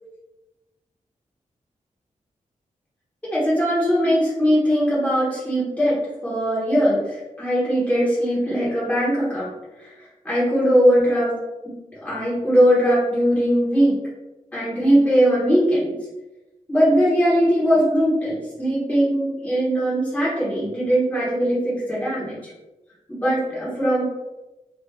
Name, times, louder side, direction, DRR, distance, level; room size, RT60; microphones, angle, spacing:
voice 1, 3.3-5.9 6.2-9.5 10.2-11.3 11.6-11.8 12.0-14.0 14.5-15.9 16.7-22.4 23.1-24.0, equal, 10° left, -9 dB, 1.2 m, -20 dB
2.7 x 2.5 x 3.5 m, 1.0 s
wide cardioid pair, 140°, 13 cm